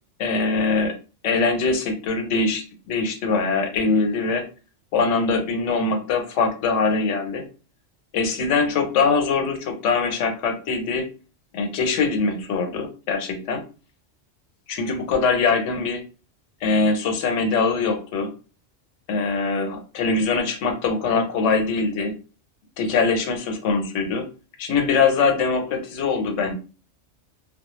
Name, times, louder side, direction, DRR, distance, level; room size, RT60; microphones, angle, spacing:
voice 1, 0.2-0.9 1.2-4.5 4.9-7.5 8.1-11.1 11.5-13.6 14.7-16.0 16.6-18.3 19.1-22.1 22.8-24.3 24.6-26.5, left 4 dB, 85° left, 6 dB, 0.9 m, -22 dB
2.2 x 2.1 x 2.9 m, 0.34 s
omnidirectional pair, 1.2 m